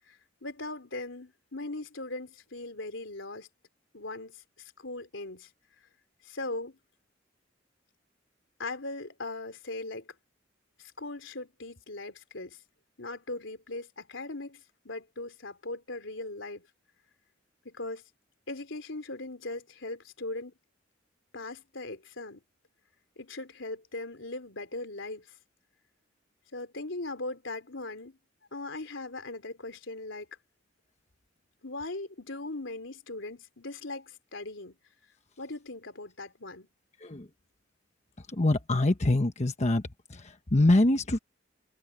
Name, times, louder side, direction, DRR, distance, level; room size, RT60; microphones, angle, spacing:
voice 1, 0.1-3.5 3.9-5.5 6.2-6.8 8.6-10.1 10.8-12.6 13.0-16.7 17.7-18.0 18.5-20.5 21.3-22.4 23.2-25.3 26.5-28.2 28.5-30.3 31.6-34.8 35.4-36.7, left 2 dB, 85° left, 3.4 m, -39 dB
voice 2, 38.2-39.8 40.1-41.2, left 2 dB, 35° left, 1.1 m, -25 dB
head